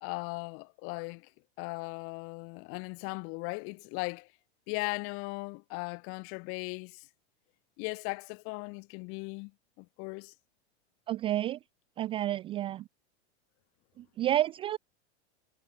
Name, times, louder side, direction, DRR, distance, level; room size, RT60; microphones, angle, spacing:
voice 1, 0.0-1.3 1.6-4.3 4.7-7.1 7.8-9.5 9.8-10.3, left 30 dB, 40° left, 1.3 m, -38 dB
voice 2, 11.1-11.6 12.0-12.8 14.0-14.8, right 13 dB, 15° right, 0.3 m, -30 dB
supercardioid pair, 145°, 34 cm